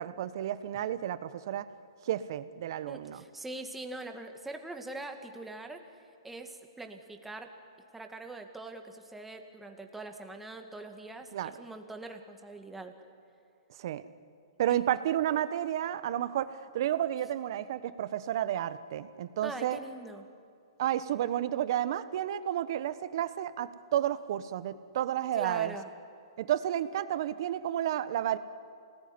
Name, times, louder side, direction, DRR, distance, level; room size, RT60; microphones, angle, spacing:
voice 1, 0.0-1.6 2.0-3.2 11.3-11.5 13.8-14.0 14.6-19.8 20.8-25.7 26.4-28.4, right 11 dB, 55° right, 14 dB, 1.1 m, -31 dB
voice 2, 2.9-5.8 6.2-7.5 7.9-12.9 14.7-14.8 19.4-20.2 25.3-25.9, right 2 dB, 5° right, 4 dB, 2.2 m, -43 dB
27.0 x 19.0 x 9.7 m, 2.4 s
hypercardioid pair, 125°, 3 cm